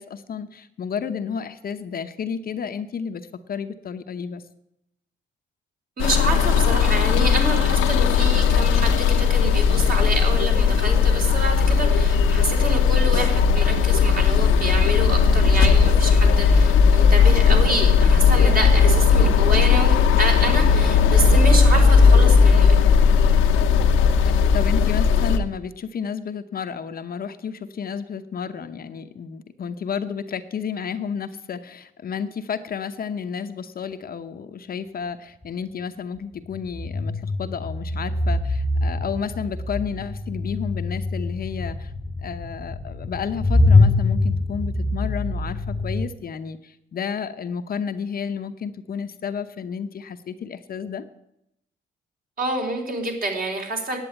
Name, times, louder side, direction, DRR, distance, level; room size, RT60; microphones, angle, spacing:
voice 1, 0.0-4.4 24.5-41.9 42.2-51.0, left 6 dB, 50° left, 9 dB, 0.8 m, -31 dB
sound 1, 6.0-25.4, left 6 dB, 90° left, 0.9 m, -17 dB
voice 2, 6.0-22.8 52.4-54.0, right 2 dB, 45° right, 2 dB, 3.5 m, -27 dB
sound 2, 35.4-35.5 36.5-46.1, left 2 dB, 10° left, 1.1 m, -23 dB
9.8 x 8.2 x 9.0 m, 0.81 s
cardioid pair, 90°, 20 cm